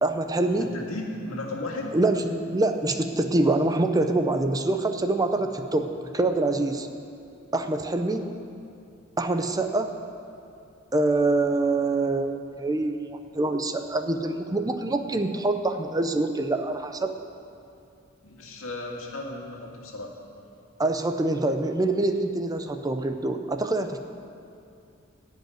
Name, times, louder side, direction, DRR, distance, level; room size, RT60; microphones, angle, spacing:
voice 1, 0.0-0.7 1.9-6.9 7.5-8.3 9.2-9.9 10.9-17.1 20.8-24.0, right 2 dB, 20° right, 6 dB, 0.6 m, -25 dB
voice 2, 0.5-1.9 18.2-20.1, left 2 dB, 80° left, -1 dB, 2.0 m, -35 dB
16.0 x 5.4 x 9.2 m, 2.5 s
head